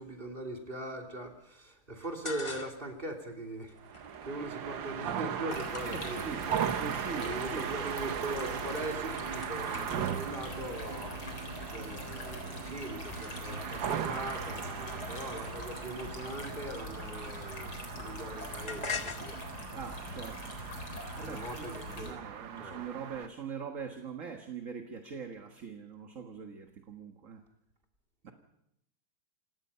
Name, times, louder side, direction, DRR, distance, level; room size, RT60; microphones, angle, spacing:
voice 1, 0.0-6.6 7.2-19.4 21.2-22.2 22.6-22.8 28.3-28.4, right 1 dB, 25° right, 2 dB, 3.3 m, -41 dB
sound 1, 2.0-3.0 3.3-6.9 7.3-7.8 8.1-8.5 8.8-13.9 14.5-17.7 18.0-21.2, left 4 dB, 35° left, 0.4 m, -46 dB
sound 2, 3.8-23.3, right 8 dB, 65° right, 1.7 m, -38 dB
voice 2, 5.4-7.7 19.7-20.5 21.2-27.4 28.2-28.3, right 6 dB, 40° right, 4 dB, 1.7 m, -43 dB
sound 3, 5.5-22.1, left 2 dB, 75° left, 4.9 m, -43 dB
28.0 x 17.5 x 5.6 m, 0.80 s
omnidirectional pair, 2.3 m